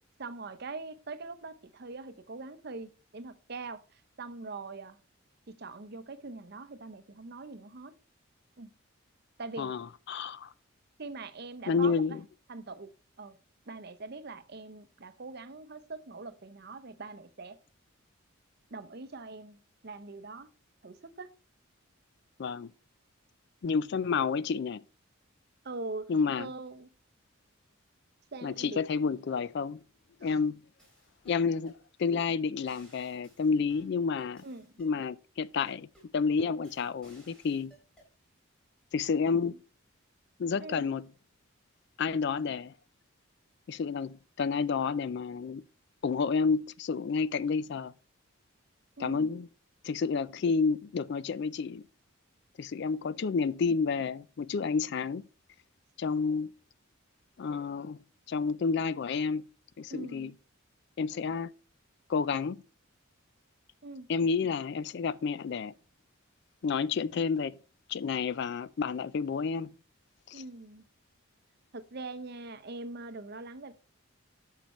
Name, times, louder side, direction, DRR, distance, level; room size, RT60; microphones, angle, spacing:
voice 1, 0.2-5.0 5.5-7.9 8.6-8.7 9.4-9.7 11.0-12.2 12.5-12.9 13.2-13.4 13.7-17.6 18.7-20.5 20.8-21.3 25.6-26.1 26.4-26.9 28.3-28.8 30.2-30.4 34.4-34.7 39.4-39.6 40.6-40.9 49.0-49.3 59.9-60.3 63.8-64.1 70.3-70.8 71.7-73.7, right 3 dB, 50° right, 0.7 m, -42 dB
voice 2, 9.6-10.5 11.7-12.2 22.4-22.7 23.6-24.8 26.1-26.5 28.4-29.8 30.2-30.6 31.3-31.7 32.0-34.4 34.8-35.9 36.1-37.7 38.9-39.6 40.4-41.1 42.0-42.7 43.7-45.6 46.0-47.9 49.0-49.5 49.8-51.8 52.6-55.2 56.0-56.5 57.4-58.0 58.3-59.4 59.8-60.3 61.0-61.5 62.1-62.6 64.1-65.7 66.6-67.5 67.9-69.7 70.3-70.4, left 5 dB, 55° left, 0.4 m, -30 dB
sound 1, 30.0-30.5 30.8-31.8 32.3-32.4 32.7-35.0 35.6-36.2 36.6-38.1, right 1 dB, 5° left, 3.8 m, -61 dB
11.5 x 6.6 x 3.1 m
head